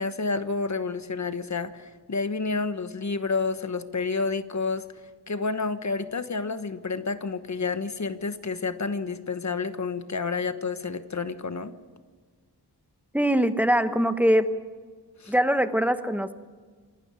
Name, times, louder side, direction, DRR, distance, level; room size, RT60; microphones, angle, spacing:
voice 1, 0.0-4.8 5.3-11.7 15.2-15.3, left 4 dB, 45° left, 10 dB, 1.2 m, -29 dB
voice 2, 13.1-14.5 15.3-16.3, equal, 5° right, 9 dB, 1.1 m, -22 dB
27.0 x 12.5 x 9.0 m, 1.5 s
wide cardioid pair, 110°, 40 cm